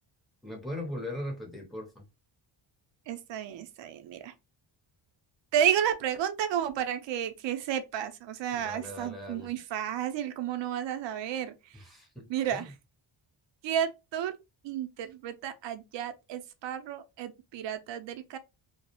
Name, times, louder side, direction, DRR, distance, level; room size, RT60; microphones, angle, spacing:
voice 1, 0.4-2.0 8.5-9.5 11.7-12.7, left 1 dB, ahead, 0.6 m, -39 dB
voice 2, 3.1-4.3 5.5-11.8 12.3-12.7 13.6-14.3 14.6-18.4, right 10 dB, 65° right, 0.5 m, -32 dB
2.3 x 2.0 x 2.8 m
wide cardioid pair, 160°, 48 cm